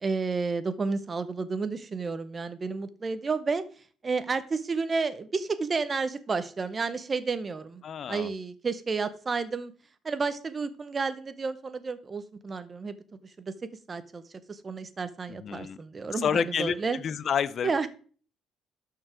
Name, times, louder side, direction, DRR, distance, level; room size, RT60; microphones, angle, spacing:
voice 1, 0.0-3.6 4.0-7.8 8.1-9.7 10.0-12.9 13.4-14.2 14.5-17.0 17.6-17.9, right 4 dB, 20° right, 13 dB, 0.6 m, -31 dB
voice 2, 7.8-8.3 15.3-15.8 16.2-16.7 17.0-17.9, left 8 dB, 35° left, 17 dB, 0.4 m, -29 dB
12.0 x 4.6 x 4.9 m, 0.42 s
cardioid pair, 175°, 0 cm